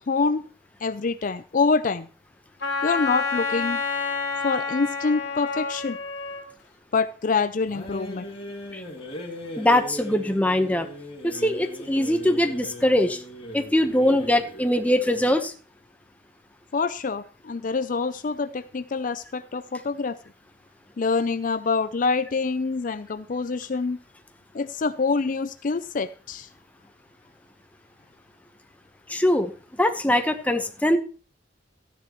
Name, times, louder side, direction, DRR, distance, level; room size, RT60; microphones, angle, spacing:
voice 1, 0.1-0.4 0.8-2.1 2.8-3.8 4.4-6.0 6.9-8.3 16.7-20.2 21.0-24.0 24.5-26.5, left 4 dB, 45° left, 12 dB, 0.5 m, -26 dB
Wind instrument woodwind instrument, 2.6-6.5, left 4 dB, 65° left, 3.3 m, -29 dB
sound 1, 7.7-15.3, equal, 30° left, 2.8 m, -39 dB
voice 2, 9.6-10.9 11.2-13.2 13.5-15.5 29.1-29.5 29.8-31.0, left 1 dB, 10° left, 6 dB, 0.9 m, -22 dB
13.5 x 10.0 x 3.0 m, 0.37 s
head